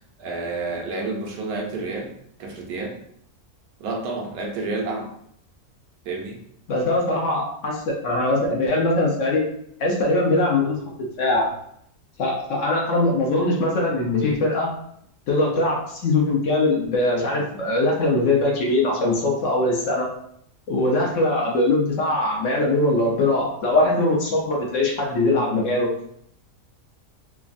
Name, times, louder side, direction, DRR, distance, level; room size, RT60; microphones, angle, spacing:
voice 1, 0.2-2.1 2.4-2.9 3.8-5.1 6.0-6.4, right 3 dB, 85° right, 0 dB, 1.2 m, -29 dB
voice 2, 6.7-9.4 9.8-10.8 11.2-11.5 12.2-14.7 15.3-20.1 20.7-25.9, left 2 dB, 65° left, -1 dB, 0.9 m, -21 dB
3.3 x 2.0 x 2.4 m, 0.69 s
omnidirectional pair, 1.6 m